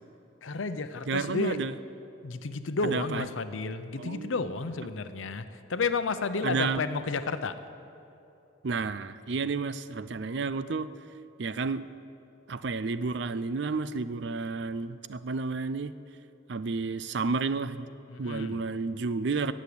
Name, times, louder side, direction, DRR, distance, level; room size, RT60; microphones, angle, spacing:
voice 1, 0.4-1.6 2.2-7.6 18.1-18.6, left 4 dB, 85° left, 11 dB, 0.7 m, -31 dB
voice 2, 1.1-1.7 2.8-3.3 4.0-4.4 6.4-6.8 8.6-10.9 11.4-11.8 12.5-15.9 16.5-17.9 18.2-19.5, right 4 dB, 65° right, 14 dB, 0.5 m, -31 dB
15.5 x 6.4 x 9.7 m, 2.8 s
head